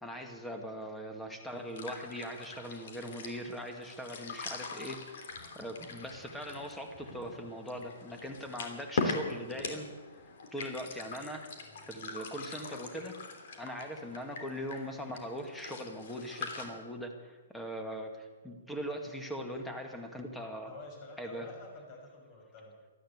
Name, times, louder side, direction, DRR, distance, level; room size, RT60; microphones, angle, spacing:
voice 1, 0.0-9.9 10.5-13.2 13.6-20.7 21.2-21.5, equal, 5° left, 4 dB, 2.1 m, -41 dB
sound 1, 1.5-16.6, left 4 dB, 60° left, 3.1 m, -42 dB
voice 2, 20.7-22.9, left 2 dB, 35° left, 2 dB, 6.1 m, -49 dB
13.5 x 13.0 x 8.1 m, 1.4 s
hypercardioid pair, 140°, 0 cm